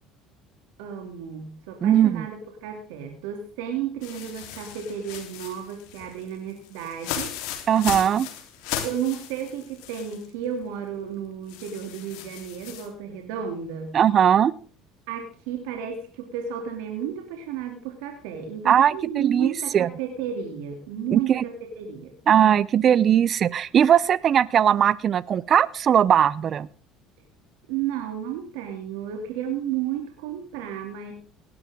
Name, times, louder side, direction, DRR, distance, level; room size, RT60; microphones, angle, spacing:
voice 1, 0.8-7.3 8.8-14.0 15.1-22.1 27.7-31.1, right 9 dB, 85° right, 4 dB, 2.6 m, -32 dB
voice 2, 1.8-2.2 7.7-8.3 13.9-14.5 18.7-19.9 21.1-21.4 22.3-26.7, right 9 dB, 40° right, 21 dB, 0.5 m, -19 dB
sound 1, 4.0-10.3 10.6-10.7 11.5-12.9, left 10 dB, 80° left, 3.3 m, -36 dB
18.0 x 12.0 x 3.6 m, 0.42 s
supercardioid pair, 105°, 0 cm